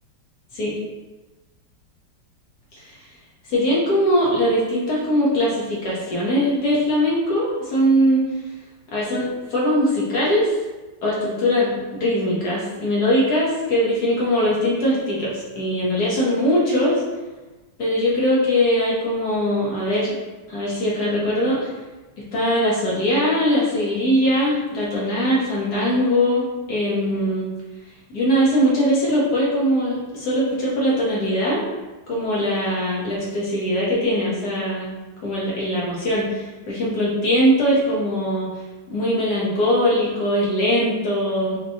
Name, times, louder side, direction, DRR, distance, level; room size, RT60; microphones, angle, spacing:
voice 1, 3.5-8.2 8.9-10.6 11.0-17.0 17.8-20.1 20.5-21.7 22.2-26.4 26.7-27.5 28.1-31.6 32.1-34.9 35.2-38.5 38.9-41.6, equal, 60° left, -5 dB, 1.4 m, -21 dB
4.4 x 2.2 x 2.6 m, 1.1 s
omnidirectional pair, 2.1 m